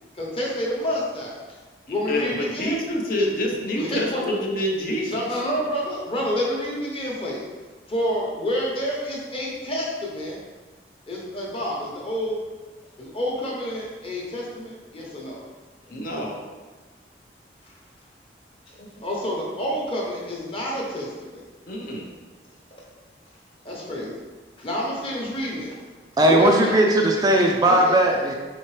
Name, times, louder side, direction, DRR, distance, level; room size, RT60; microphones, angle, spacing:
voice 1, 0.1-1.4 1.9-2.8 3.1-3.3 3.8-4.4 5.1-7.5 7.9-10.4 11.1-12.4 13.0-15.4 19.0-21.4 23.6-24.2 24.6-25.8 26.2-26.7 27.7-27.9, left 1 dB, 30° left, -3 dB, 0.9 m, -28 dB
voice 2, 2.1-5.2 15.9-16.4 18.8-18.9 21.7-22.1, left 1 dB, 50° left, 0 dB, 0.6 m, -27 dB
voice 3, 26.2-28.3, right 1 dB, 20° right, 1 dB, 0.3 m, -18 dB
4.2 x 3.7 x 3.2 m, 1.3 s
head